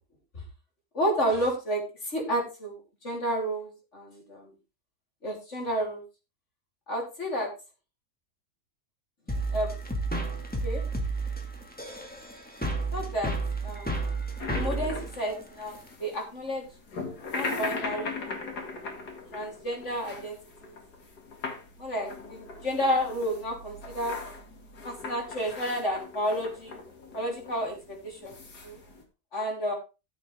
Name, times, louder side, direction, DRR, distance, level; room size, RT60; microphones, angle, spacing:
voice 1, 0.9-4.5 5.2-6.0 6.9-7.5 9.5-9.8 10.6-10.8 12.9-13.3 13.6-13.9 14.5-16.7 17.3-18.5 19.3-20.7 21.8-24.2 24.8-26.8 27.1-28.4 28.6-28.8 29.3-29.7, equal, 45° left, 0 dB, 3.8 m, -31 dB
sound 1, 9.3-15.9, right 3 dB, 5° left, 1.7 m, -32 dB
sound 2, 14.4-29.0, left 3 dB, 90° left, 2.6 m, -39 dB
13.5 x 7.7 x 3.4 m, 0.29 s
omnidirectional pair, 1.7 m